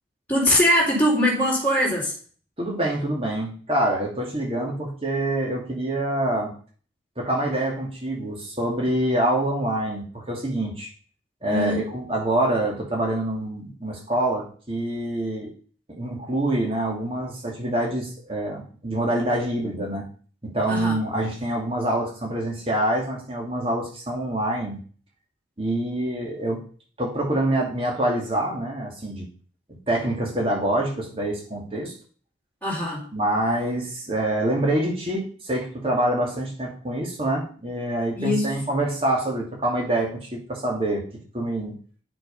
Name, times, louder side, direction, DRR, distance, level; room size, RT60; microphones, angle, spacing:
voice 1, 0.3-2.1 11.5-11.9 20.7-21.0 32.6-33.0 38.1-38.6, left 1 dB, 10° left, -9 dB, 3.7 m, -22 dB
voice 2, 2.6-6.5 7.2-10.9 11.4-15.5 15.9-20.0 20.4-24.8 25.6-26.6 27.0-29.3 29.7-31.9 33.1-41.0 41.3-41.7, right 1 dB, 30° right, -1 dB, 2.4 m, -26 dB
9.3 x 6.5 x 5.4 m, 0.43 s
head